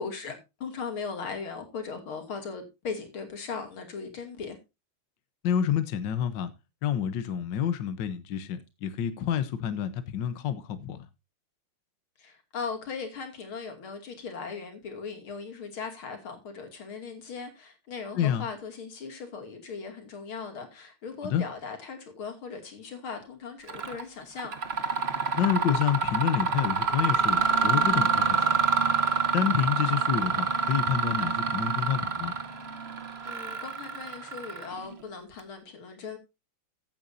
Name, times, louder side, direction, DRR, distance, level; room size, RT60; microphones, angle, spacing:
voice 1, 0.0-4.6 12.2-24.5 33.3-36.2, left 5 dB, 85° left, 3.4 m, -38 dB
voice 2, 5.4-6.5 6.8-11.1 18.1-18.4 21.2-21.4 25.4-28.4 29.3-32.3, left 9 dB, 65° left, 1.5 m, -28 dB
Mechanisms, 23.7-24.0 24.4-34.9, right 5 dB, 40° right, 1.1 m, -27 dB
15.0 x 9.0 x 2.7 m
omnidirectional pair, 2.2 m